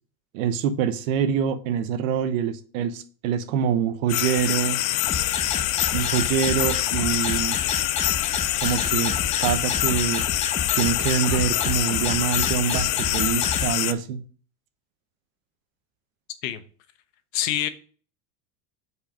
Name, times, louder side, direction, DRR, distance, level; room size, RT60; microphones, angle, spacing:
voice 1, 0.3-4.8 5.9-7.6 8.6-9.1 9.4-10.2 10.8-14.2, right 8 dB, 70° right, 1.0 m, -25 dB
sound 1, 4.1-13.9, left 15 dB, 45° left, 0.5 m, -25 dB
sound 2, 5.1-13.7, left 4 dB, 15° left, 1.2 m, -30 dB
voice 2, 17.3-17.7, left 11 dB, 75° left, 1.0 m, -25 dB
5.6 x 4.8 x 5.1 m
supercardioid pair, 130°, 41 cm